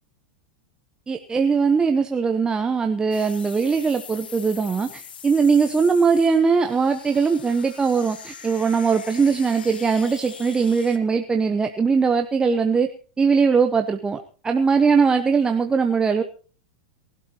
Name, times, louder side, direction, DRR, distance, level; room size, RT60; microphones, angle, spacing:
voice 1, 1.1-12.9 13.2-16.2, right 5 dB, 15° right, 6 dB, 1.2 m, -20 dB
sound 1, 3.1-11.0, left 7 dB, 90° left, 1.5 m, -42 dB
24.5 x 12.5 x 3.0 m, 0.38 s
hypercardioid pair, 110°, 5 cm